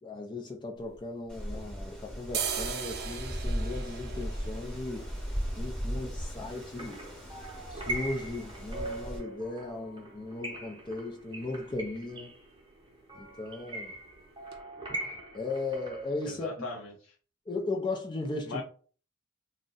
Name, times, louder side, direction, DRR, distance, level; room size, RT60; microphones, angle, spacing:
voice 1, 0.0-5.1 5.6-7.0 7.7-12.3 13.1-14.0 15.3-16.7 17.5-18.6, left 2 dB, 25° left, 0.4 m, -37 dB
sound 1, 0.8-1.8 2.2-9.9 10.2-10.3 10.5-11.1 11.4-11.6 11.9-12.1 12.4-13.1 13.5-13.6 14.1-14.2 14.5-14.6, right 7 dB, 50° right, 0.4 m, -41 dB
Wind, 1.3-9.2, equal, 5° left, 0.9 m, -37 dB
sound 2, 6.5-16.3, right 1 dB, 25° right, 0.8 m, -41 dB
voice 2, 16.3-17.1 18.5-18.6, left 3 dB, 85° left, 0.5 m, -39 dB
2.6 x 2.1 x 3.7 m
head